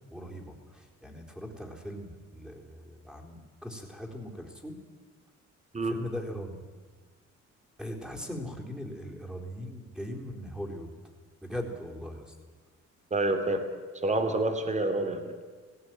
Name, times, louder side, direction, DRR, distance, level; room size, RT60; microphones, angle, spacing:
voice 1, 0.1-4.8 5.8-6.6 7.8-10.9 11.4-12.3, equal, ahead, 0 dB, 4.1 m, -40 dB
voice 2, 13.1-13.7 14.0-15.4, right 2 dB, 25° right, 7 dB, 2.7 m, -28 dB
17.5 x 16.0 x 9.2 m, 1.5 s
cardioid pair, 90°, 30 cm